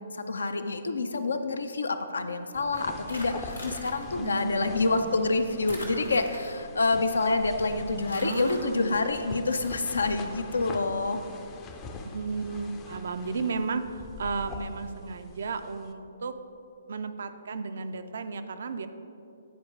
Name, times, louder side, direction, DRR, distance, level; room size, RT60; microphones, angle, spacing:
voice 1, 0.0-11.3, left 3 dB, 70° left, 8 dB, 0.5 m, -27 dB
sound 1, 2.5-15.9, left 3 dB, 20° left, 0.5 m, -43 dB
sound 2, 3.1-4.0 5.7-6.8 8.1-8.6, left 1 dB, 90° left, 1.4 m, -42 dB
voice 2, 4.2-5.1 8.2-9.0 12.1-16.4 16.9-18.9, right 4 dB, 60° right, 9 dB, 0.4 m, -34 dB
9.4 x 4.5 x 3.7 m, 2.7 s
figure-of-eight pair, 130°, 0 cm